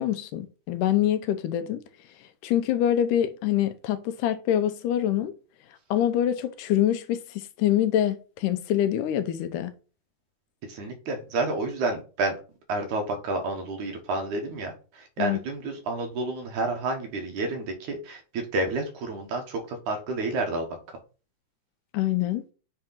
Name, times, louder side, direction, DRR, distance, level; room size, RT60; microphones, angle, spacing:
voice 1, 0.0-1.8 2.4-5.3 5.9-9.7 15.2-15.4 21.9-22.4, left 11 dB, 85° left, 2.3 m, -25 dB
voice 2, 10.7-12.3 12.7-20.7, right 2 dB, 75° right, 2.8 m, -30 dB
7.8 x 3.5 x 5.8 m
omnidirectional pair, 3.6 m